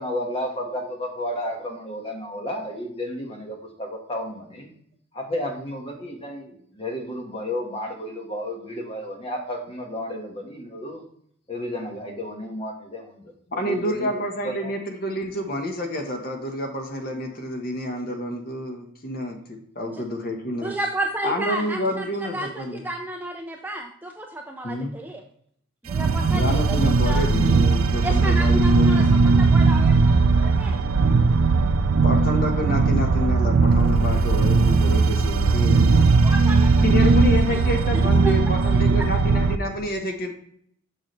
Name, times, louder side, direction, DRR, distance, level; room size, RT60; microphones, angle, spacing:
voice 1, 0.0-4.7 5.1-11.0 11.5-14.7, left 1 dB, 25° left, 1 dB, 1.3 m, -32 dB
voice 2, 13.6-20.7 21.2-22.8 24.6-24.9 26.3-29.4 32.0-36.1 36.8-40.3, left 1 dB, 45° left, 3 dB, 1.1 m, -28 dB
voice 3, 20.6-25.2 25.8-27.3 28.0-30.8 36.3-37.1 37.5-37.6 38.2-38.3, right 1 dB, 10° right, 2 dB, 0.4 m, -32 dB
sound 1, 25.9-39.6, right 4 dB, 85° right, 0.4 m, -18 dB
6.6 x 6.1 x 3.1 m, 0.66 s
head